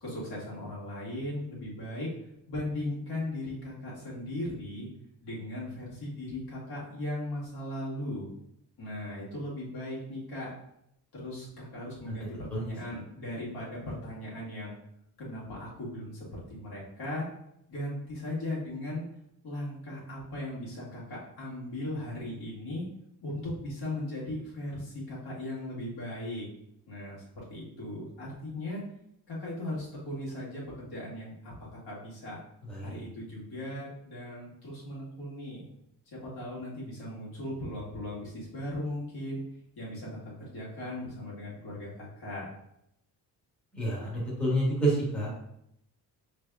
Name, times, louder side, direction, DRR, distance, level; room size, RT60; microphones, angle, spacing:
voice 1, 0.0-2.1 2.5-4.9 5.2-8.3 8.8-10.5 11.1-14.7 15.2-17.3 17.7-19.0 19.4-22.9 23.2-26.5 26.9-28.8 29.3-32.4 32.8-35.6 36.1-39.4 39.8-42.5, left 1 dB, 60° left, -6 dB, 1.7 m, -38 dB
voice 2, 43.7-45.3, right 1 dB, 5° left, -8 dB, 1.5 m, -29 dB
6.0 x 3.3 x 2.3 m, 0.78 s
cardioid pair, 160°, 43 cm